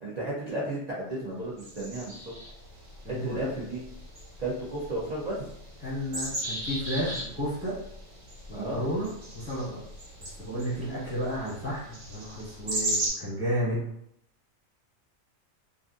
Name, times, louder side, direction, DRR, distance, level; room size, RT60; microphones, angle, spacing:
voice 1, 0.0-2.2 2.4-2.5 3.2-3.8 4.4-5.4 8.5-8.8, right 1 dB, 50° right, -7 dB, 0.5 m, -33 dB
sound 1, 1.6-13.1, right 1 dB, 90° right, 1.5 m, -37 dB
voice 2, 3.0-3.5 5.8-7.7 8.5-9.8 10.2-13.9, equal, 10° right, -8 dB, 1.3 m, -32 dB
2.5 x 2.4 x 2.5 m, 0.70 s
omnidirectional pair, 1.3 m